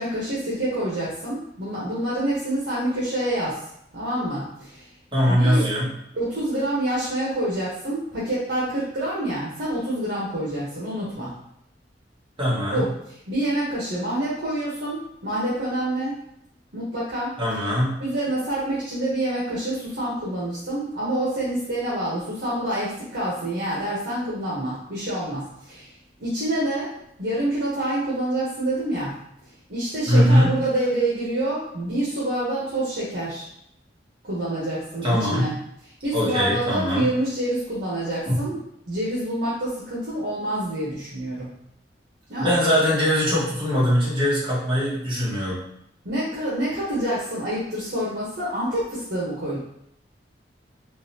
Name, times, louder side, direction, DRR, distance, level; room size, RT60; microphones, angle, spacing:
voice 1, 0.0-3.6 3.9-4.9 5.3-5.7 6.1-11.3 12.7-16.1 16.7-17.4 18.0-25.9 26.2-29.2 29.5-33.5 34.2-35.5 35.8-38.6 38.9-41.5 42.3-42.5 46.0-49.6, right 1 dB, 65° right, -8 dB, 1.0 m, -27 dB
voice 2, 5.1-5.9 12.4-12.9 17.4-18.0 30.1-30.5 35.0-35.5 36.1-37.1 38.2-38.4 42.4-45.6, equal, 30° right, -7 dB, 1.5 m, -21 dB
3.9 x 3.1 x 2.8 m, 0.76 s
head